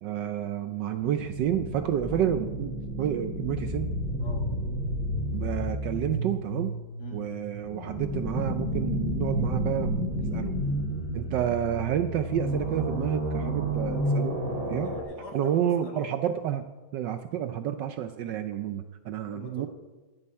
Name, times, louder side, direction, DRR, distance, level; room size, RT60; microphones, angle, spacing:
voice 1, 0.0-3.9 5.3-6.7 7.1-10.5 11.1-14.4 14.7-14.9 15.3-16.6 16.9-19.7, right 10 dB, 70° right, 9 dB, 1.1 m, -30 dB
sound 1, 1.0-15.0, equal, 50° right, 3.2 m, -31 dB
voice 2, 4.2-4.5 7.0-7.3 14.8-16.1 19.3-19.7, left 3 dB, 55° left, 3 dB, 1.9 m, -44 dB
12.5 x 6.6 x 8.8 m, 1.3 s
omnidirectional pair, 2.3 m